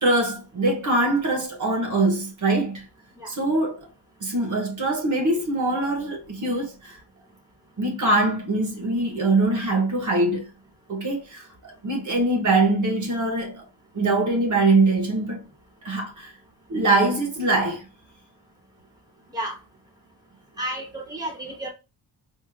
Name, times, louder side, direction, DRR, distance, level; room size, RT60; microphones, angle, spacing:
voice 1, 0.0-2.8 3.3-3.9 4.2-7.0 7.8-10.5 10.9-13.6 13.9-15.4 15.8-16.3 16.7-17.8, right 2 dB, 45° right, 1.0 m, -23 dB
voice 2, 20.6-21.7, right 1 dB, 10° right, 0.9 m, -31 dB
4.7 x 2.5 x 2.4 m
wide cardioid pair, 160°, 41 cm